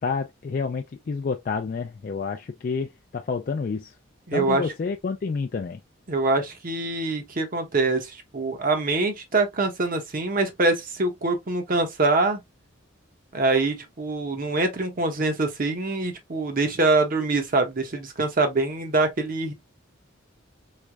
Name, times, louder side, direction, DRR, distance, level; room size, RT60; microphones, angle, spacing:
voice 1, 0.0-3.9 4.3-5.8, left 5 dB, 45° left, 0.3 m, -29 dB
voice 2, 4.3-4.6 6.1-12.4 13.3-19.5, right 3 dB, 45° right, 0.8 m, -24 dB
3.5 x 3.2 x 2.3 m
head